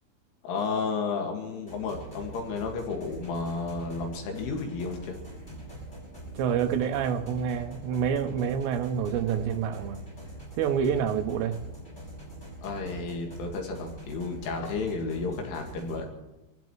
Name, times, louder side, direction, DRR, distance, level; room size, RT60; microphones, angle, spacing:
voice 1, 0.4-5.2 12.6-16.1, left 4 dB, 80° left, 2 dB, 4.3 m, -32 dB
sound 1, 1.7-16.0, right 1 dB, 15° left, 6.0 m, -43 dB
voice 2, 6.3-10.0 10.6-11.6, right 8 dB, 75° right, 6 dB, 2.7 m, -27 dB
26.5 x 16.0 x 3.1 m, 1.0 s
omnidirectional pair, 5.6 m